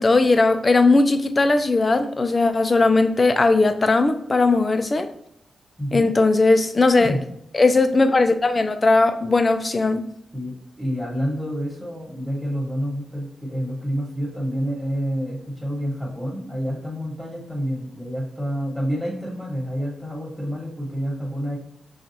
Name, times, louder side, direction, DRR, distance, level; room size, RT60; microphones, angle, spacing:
voice 1, 0.0-5.1 5.9-7.1 7.5-10.0, left 3 dB, 35° left, 8 dB, 0.4 m, -18 dB
voice 2, 5.8-6.1 7.0-7.2 10.3-21.6, equal, ahead, -4 dB, 1.3 m, -28 dB
5.9 x 2.4 x 2.7 m, 0.78 s
cardioid pair, 75°, 0 cm